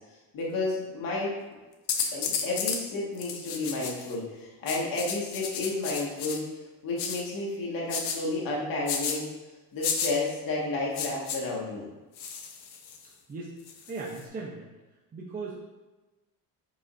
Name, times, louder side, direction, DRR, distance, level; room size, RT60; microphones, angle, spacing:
voice 1, 0.3-1.3 2.1-6.4 6.8-9.3 9.7-11.9, left 2 dB, 55° left, -4 dB, 2.0 m, -31 dB
sound 1, 1.9-2.8 3.2-4.1 4.7-6.4 7.0-7.2 7.9-8.2 8.9-9.2 9.8-10.1 10.9-11.4 12.2-13.1 13.7-14.2, left 7 dB, 70° left, 1.1 m, -32 dB
voice 2, 13.9-14.7 15.1-15.6, right 3 dB, 20° right, -4 dB, 0.9 m, -37 dB
9.5 x 5.4 x 2.7 m, 1.2 s
cardioid pair, 155°, 41 cm